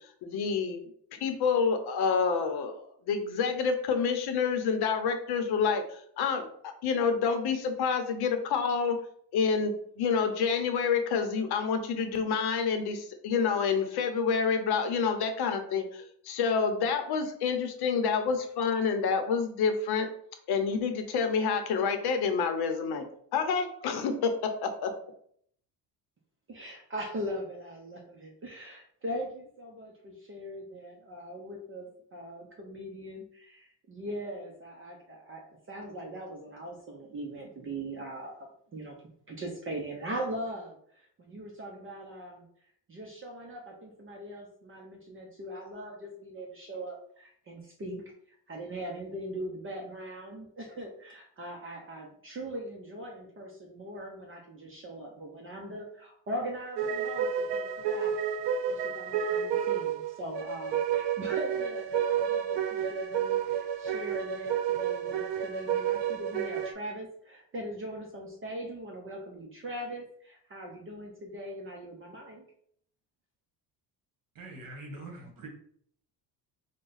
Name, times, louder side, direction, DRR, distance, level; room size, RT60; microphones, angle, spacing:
voice 1, 0.2-0.8 1.2-6.5 6.8-9.0 9.3-20.1 20.5-23.0 23.3-24.3 24.6-24.9, left 5 dB, 60° left, 6 dB, 0.8 m, -28 dB
voice 2, 26.5-39.0 39.3-42.5 42.9-58.1 58.7-72.5, right 1 dB, 30° right, 0 dB, 0.7 m, -40 dB
sound 1, 56.8-66.7, right 8 dB, 80° right, 0.8 m, -30 dB
voice 3, 74.3-75.5, right 2 dB, 50° right, 0 dB, 1.5 m, -43 dB
4.9 x 2.2 x 3.9 m, 0.64 s
cardioid pair, 140°, 42 cm